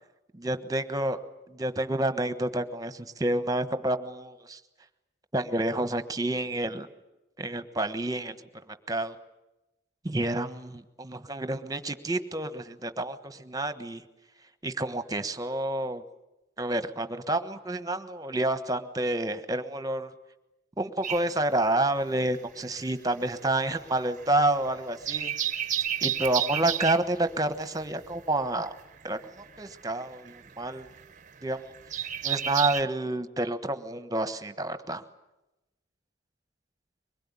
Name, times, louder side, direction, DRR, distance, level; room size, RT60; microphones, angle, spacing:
voice 1, 0.3-1.2 1.5-4.6 5.3-6.9 7.4-8.4 8.7-9.2 10.0-14.0 14.6-16.0 16.6-20.1 20.8-25.3 26.0-28.8 29.0-29.2 29.6-30.9 31.4-35.0, right 2 dB, 20° right, 10 dB, 1.3 m, -29 dB
sound 1, 21.0-22.5 22.7-32.8, right 10 dB, 40° right, 0.8 m, -32 dB
23.5 x 21.5 x 9.8 m, 0.97 s
head